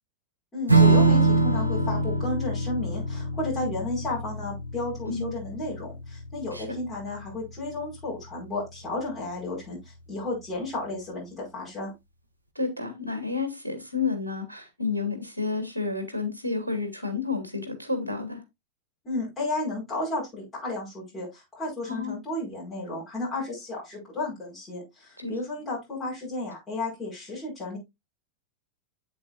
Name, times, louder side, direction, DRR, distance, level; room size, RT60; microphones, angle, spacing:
voice 1, 0.5-11.9 19.0-27.8, left 2 dB, 15° left, 5.0 m, -33 dB
Strum, 0.7-7.5, right 3 dB, 85° right, 1.3 m, -24 dB
voice 2, 12.6-18.4 21.9-22.2 25.2-25.4, left 4 dB, 90° left, 1.9 m, -30 dB
8.3 x 7.8 x 2.4 m
figure-of-eight pair, 90°, 0 cm